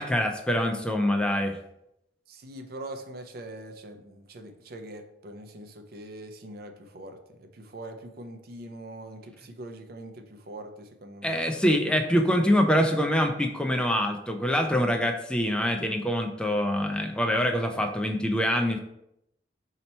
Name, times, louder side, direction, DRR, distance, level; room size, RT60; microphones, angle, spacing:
voice 1, 0.0-1.6 11.2-18.8, equal, 5° left, 4 dB, 0.3 m, -25 dB
voice 2, 2.3-11.4 12.1-12.2, right 1 dB, 60° right, 6 dB, 0.5 m, -43 dB
4.3 x 2.8 x 4.2 m, 0.81 s
head